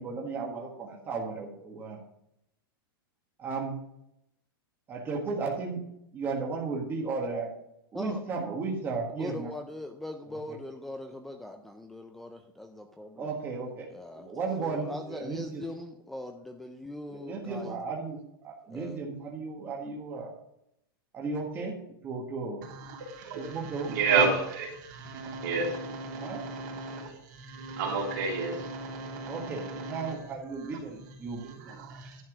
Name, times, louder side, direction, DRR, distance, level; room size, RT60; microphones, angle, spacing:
voice 1, 0.0-2.0 3.4-3.7 4.9-5.8 6.1-7.5 7.9-9.5 10.5-10.6 13.2-15.6 17.1-20.3 21.1-21.8 22.0-22.6 23.4-24.0 26.2-26.4 29.3-31.5, right 4 dB, 15° right, -1 dB, 1.5 m, -35 dB
voice 2, 9.1-13.3 13.9-14.3 14.6-17.8 18.7-19.0, left 1 dB, ahead, 5 dB, 0.4 m, -41 dB
voice 3, 22.6-32.0, right 4 dB, 55° right, -1 dB, 3.2 m, -32 dB
11.0 x 4.6 x 6.1 m, 0.79 s
supercardioid pair, 165°, 12 cm